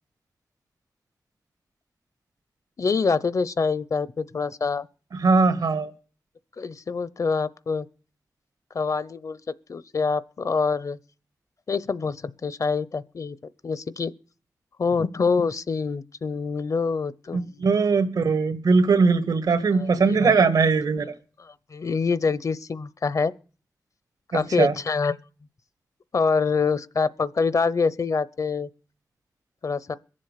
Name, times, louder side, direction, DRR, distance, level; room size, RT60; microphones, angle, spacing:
voice 1, 2.8-4.9 6.6-7.9 8.7-9.4 9.7-11.0 11.7-13.4 13.6-14.1 14.8-17.7 19.7-20.4 21.4-23.3 24.3-25.2 26.1-28.7 29.6-30.0, left 4 dB, 60° left, 0.8 m, -25 dB
voice 2, 5.1-5.9 17.3-21.1 24.3-24.7, right 4 dB, 90° right, 1.7 m, -20 dB
21.5 x 7.5 x 6.7 m
wide cardioid pair, 70°, 6 cm